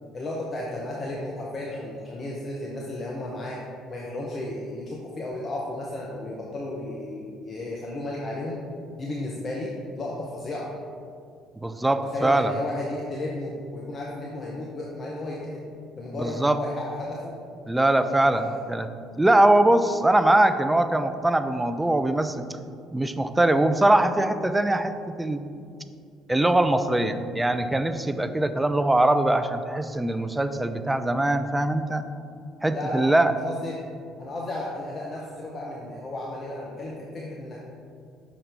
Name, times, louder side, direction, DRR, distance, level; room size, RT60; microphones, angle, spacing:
voice 1, 0.1-3.6 3.9-8.6 9.0-10.7 11.9-15.6 16.0-17.4 18.1-18.6 32.7-33.8 34.2-37.6, left 1 dB, 35° left, -2 dB, 0.7 m, -34 dB
voice 2, 11.6-12.5 16.2-16.6 17.7-18.9 19.2-22.5 22.9-25.4 26.3-32.0 32.6-33.3, right 1 dB, 10° right, 9 dB, 0.3 m, -22 dB
5.6 x 5.1 x 3.3 m, 2.4 s
figure-of-eight pair, 55°, 0 cm